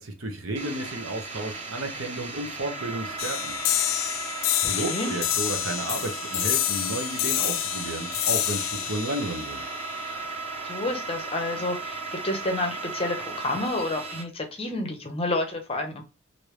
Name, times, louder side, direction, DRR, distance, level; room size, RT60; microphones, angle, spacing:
voice 1, 0.0-3.5 4.6-9.6, right 2 dB, 60° right, 0.8 m, -32 dB
sound 1, 0.6-14.2, right 3 dB, 30° right, 0.7 m, -36 dB
sound 2, 3.2-10.2, left 13 dB, 65° left, 0.3 m, -28 dB
voice 2, 4.8-5.1 10.6-16.0, left 2 dB, 25° left, 0.7 m, -30 dB
3.2 x 2.6 x 3.1 m
head